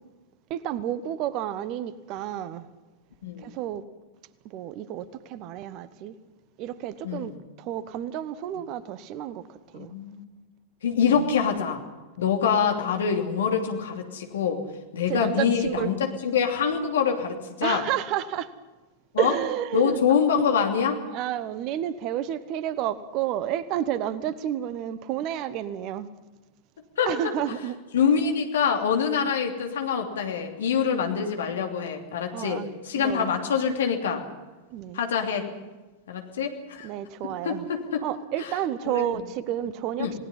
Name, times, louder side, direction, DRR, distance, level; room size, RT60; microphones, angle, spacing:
voice 1, 0.5-2.7 3.4-3.8 4.4-6.1 6.6-7.3 7.6-9.5 9.7-9.9 11.1-11.2 15.1-15.9 17.6-18.5 19.2-20.0 21.1-26.1 27.1-27.8 32.3-33.3 34.7-35.0 36.8-37.7 38.0-40.1, right 11 dB, 40° right, 1.0 m, -30 dB
voice 2, 3.2-3.5 7.0-7.4 9.7-10.2 10.8-11.8 12.2-14.6 14.9-17.9 19.1-19.3 19.7-21.0 27.0-27.1 27.9-34.2 34.9-35.5 36.1-36.9 37.2-38.0 38.4-38.5 38.9-39.0 40.0-40.1, left 7 dB, 60° left, 2.9 m, -25 dB
28.5 x 19.0 x 5.6 m
figure-of-eight pair, 90°, 0 cm